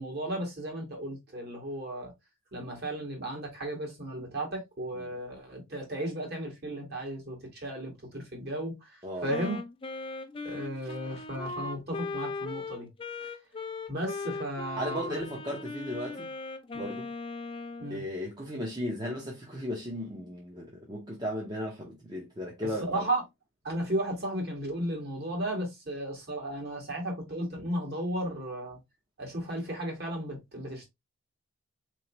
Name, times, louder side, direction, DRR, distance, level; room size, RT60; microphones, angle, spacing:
voice 1, 0.0-2.1 2.5-9.6 10.4-12.9 13.2-13.3 13.9-15.2 16.7-16.9 17.8-18.0 22.8-23.2 23.6-28.8 29.2-30.9, right 1 dB, 45° right, 1.6 m, -35 dB
Wind instrument woodwind instrument, 9.3-17.9, left 3 dB, 25° left, 0.4 m, -38 dB
voice 2, 14.8-16.3 16.8-17.1 17.9-23.1, equal, 20° right, 0.8 m, -36 dB
4.0 x 3.1 x 2.9 m
head